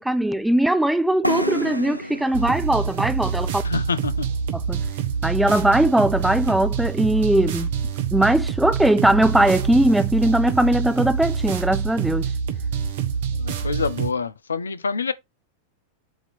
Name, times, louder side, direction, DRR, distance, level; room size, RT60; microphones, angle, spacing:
voice 1, 0.0-3.6 4.5-4.8 5.2-7.7 8.1-12.3, right 1 dB, 5° right, 0.5 m, -20 dB
sound 1, 1.2-4.9, equal, 90° right, 0.4 m, -31 dB
sound 2, 2.3-14.1, right 6 dB, 55° right, 1.1 m, -26 dB
voice 2, 3.6-4.3 13.3-15.1, left 5 dB, 75° left, 0.5 m, -26 dB
8.0 x 2.9 x 4.2 m
figure-of-eight pair, 90°, 0 cm